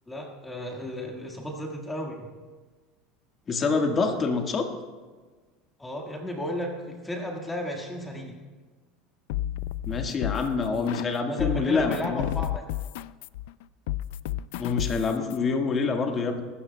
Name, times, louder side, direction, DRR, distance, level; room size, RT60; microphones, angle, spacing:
voice 1, 0.1-2.3 5.8-8.4 11.3-12.6, left 1 dB, 10° left, 0 dB, 1.6 m, -34 dB
voice 2, 3.5-4.7 9.9-12.3 14.6-16.4, left 4 dB, 25° left, 3 dB, 1.5 m, -26 dB
sound 1, 9.3-11.1 11.4-15.4, left 14 dB, 80° left, 0.3 m, -32 dB
23.5 x 13.0 x 2.2 m, 1.4 s
supercardioid pair, 135°, 0 cm